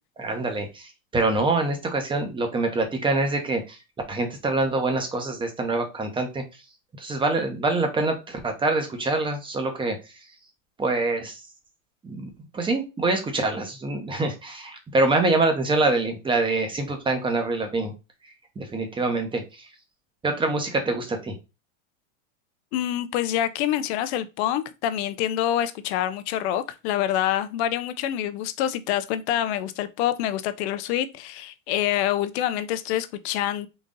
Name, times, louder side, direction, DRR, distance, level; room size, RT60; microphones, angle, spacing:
voice 1, 0.2-3.8 4.1-6.4 7.0-10.0 10.8-11.4 12.0-17.9 18.6-19.4 20.2-21.3, right 2 dB, 10° right, 0.9 m, -25 dB
voice 2, 22.7-33.7, left 11 dB, 50° left, 0.6 m, -26 dB
4.0 x 2.6 x 3.6 m
hypercardioid pair, 125°, 41 cm